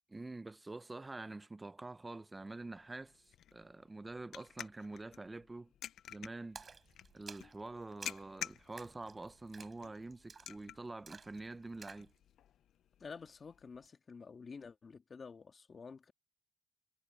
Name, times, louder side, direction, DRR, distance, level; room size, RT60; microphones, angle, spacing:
voice 1, 0.1-5.7 6.1-6.6 7.1-12.1, right 2 dB, 20° right, 0.8 m, -46 dB
sound 1, 2.6-13.9, left 10 dB, 70° left, 0.9 m, -52 dB
Splash splatter, 6.5-12.1, right 5 dB, 35° right, 4.9 m, -55 dB
voice 2, 13.0-16.1, left 5 dB, 40° left, 1.9 m, -50 dB
cardioid pair, 90°, 0 cm